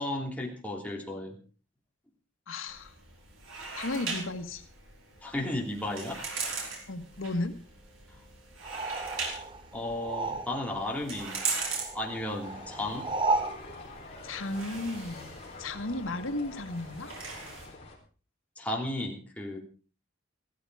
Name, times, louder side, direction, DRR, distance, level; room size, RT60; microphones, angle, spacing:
voice 1, 0.0-1.4 5.2-6.2 9.7-11.4 11.9-13.1 18.6-19.6, left 1 dB, 5° left, -1 dB, 3.1 m, -34 dB
voice 2, 2.5-2.9 3.8-4.6 6.9-7.5 14.2-15.3 15.6-17.1, left 2 dB, 90° left, 7 dB, 1.6 m, -34 dB
sound 1, 2.7-17.7, right 4 dB, 85° right, 5.2 m, -40 dB
sound 2, 8.6-10.9 11.1-13.6, right 3 dB, 25° right, 0.8 m, -34 dB
sound 3, 12.4-18.0, left 3 dB, 30° left, 4.0 m, -46 dB
15.5 x 14.0 x 4.8 m, 0.39 s
head